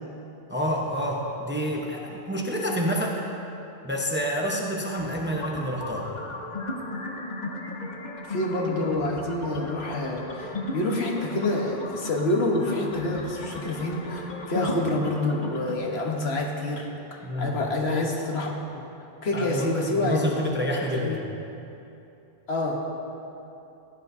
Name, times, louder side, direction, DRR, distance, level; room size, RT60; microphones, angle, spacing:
voice 1, 0.5-3.2 3.8-6.0 17.2-17.6 19.3-21.2, equal, 10° right, -2 dB, 0.8 m, -28 dB
sound 1, 5.0-15.8, left 2 dB, 45° left, 0.8 m, -36 dB
voice 2, 8.3-16.9 17.4-18.9 19.2-20.6 20.9-21.2 22.5-22.8, left 2 dB, 65° left, 0 dB, 1.4 m, -27 dB
15.5 x 10.0 x 2.7 m, 2.8 s
omnidirectional pair, 1.2 m